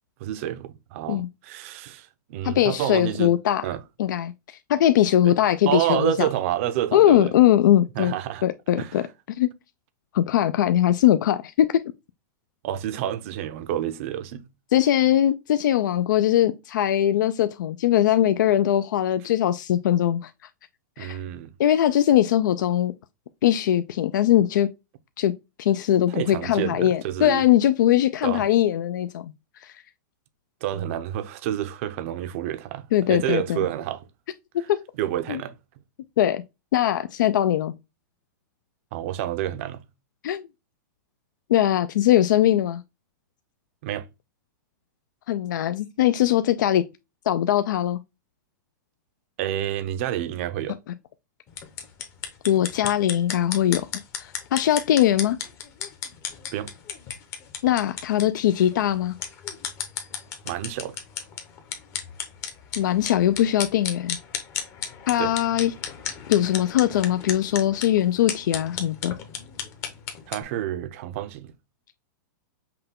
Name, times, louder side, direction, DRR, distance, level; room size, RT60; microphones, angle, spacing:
voice 1, 0.2-3.3 3.6-3.8 5.2-5.3 5.7-7.3 7.9-8.4 8.8-9.1 12.6-14.5 21.0-21.5 26.1-27.5 28.2-28.4 30.6-34.1 35.0-35.6 38.9-39.8 43.8-44.1 49.4-50.8 56.5-56.7 60.4-61.0 65.2-65.3 70.3-71.5, right 12 dB, 45° right, 0.5 m, -29 dB
voice 2, 2.4-3.6 4.0-6.3 6.9-8.1 8.4-9.0 9.4-9.5 10.1-11.8 14.7-20.3 21.0-21.2 21.6-22.9 23.4-24.7 25.2-25.3 25.6-29.3 29.6-29.8 32.9-33.7 34.7-34.8 35.3-35.4 36.2-36.4 36.7-37.7 40.2-40.4 41.5-42.8 45.3-46.8 47.3-48.0 52.5-53.8 54.2-55.4 57.6-59.2 62.8-64.2 65.1-65.7 66.3-69.1, left 11 dB, 75° left, 0.4 m, -21 dB
sound 1, 51.5-70.4, left 7 dB, 25° left, 0.7 m, -35 dB
5.7 x 2.2 x 3.6 m
supercardioid pair, 160°, 10 cm